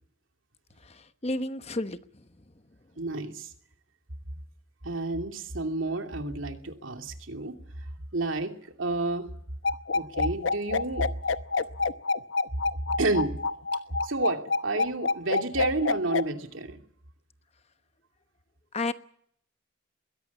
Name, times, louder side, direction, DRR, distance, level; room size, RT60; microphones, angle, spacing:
voice 1, 0.8-2.2 18.7-18.9, left 2 dB, 30° left, 11 dB, 1.1 m, -32 dB
voice 2, 3.0-3.5 4.8-7.5 8.1-8.5 8.8-9.3 9.9-11.1 13.0-13.3 14.0-16.8, right 2 dB, 80° right, 5 dB, 2.7 m, -30 dB
sound 1, 9.6-16.2, left 4 dB, 70° left, 0.9 m, -27 dB
22.0 x 17.0 x 8.4 m, 0.67 s
head